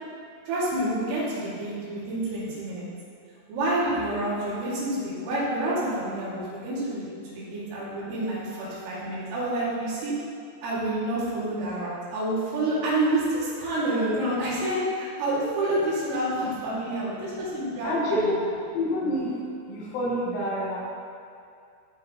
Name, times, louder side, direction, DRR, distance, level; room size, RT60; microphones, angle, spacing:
voice 1, 0.5-2.9 3.5-10.1 10.6-18.3, right 1 dB, 90° right, -9 dB, 5.0 m, -28 dB
voice 2, 17.7-19.4 19.7-20.8, left 1 dB, 75° left, -6 dB, 4.1 m, -27 dB
14.5 x 5.7 x 3.1 m, 2.4 s
omnidirectional pair, 5.6 m